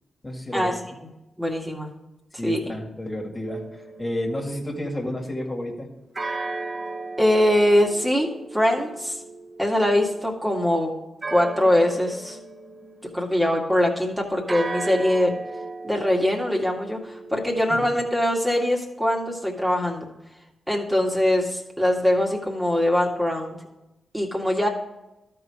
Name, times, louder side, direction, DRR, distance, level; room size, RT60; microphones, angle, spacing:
voice 1, 0.2-0.8 2.4-3.6 4.0-5.9 17.8-17.9, left 1 dB, 30° left, 1 dB, 2.1 m, -30 dB
voice 2, 1.4-1.9 2.4-2.7 7.2-9.2 9.6-10.9 11.3-12.4 13.1-15.4 15.8-20.1 20.7-23.6 24.1-24.7, left 1 dB, 10° right, 0 dB, 2.1 m, -22 dB
sound 1, 3.5-5.0 6.2-13.7 14.5-18.1, right 3 dB, 40° right, 0.6 m, -36 dB
12.5 x 4.6 x 4.8 m, 0.97 s
supercardioid pair, 40°, 0 cm